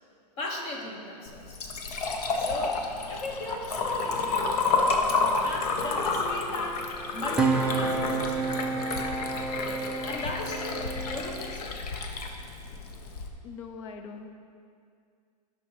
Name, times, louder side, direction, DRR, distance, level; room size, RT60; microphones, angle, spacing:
voice 1, 0.4-1.6 2.4-4.7 5.4-6.8 7.1-8.4 10.0-11.8, left 1 dB, 30° left, 1 dB, 1.2 m, -37 dB
Liquid, 1.3-13.3, left 3 dB, 65° left, 1.1 m, -30 dB
sound 1, 6.2-11.5, right 4 dB, 5° right, 0.4 m, -31 dB
voice 2, 13.4-14.3, left 5 dB, 50° left, 6 dB, 0.8 m, -43 dB
11.5 x 6.2 x 4.7 m, 2.3 s
hypercardioid pair, 155°, 21 cm